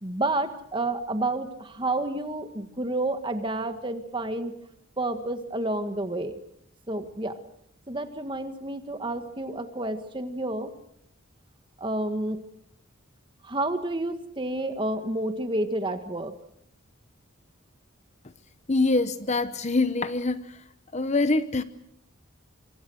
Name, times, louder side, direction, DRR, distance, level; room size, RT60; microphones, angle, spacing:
voice 1, 0.0-4.5 5.0-6.4 6.9-7.4 7.9-10.7 11.8-12.4 13.4-16.3, right 2 dB, 25° right, 1.7 m, -30 dB
voice 2, 18.7-20.6 20.9-21.6, left 3 dB, 35° left, 0.9 m, -24 dB
25.5 x 24.0 x 6.4 m
head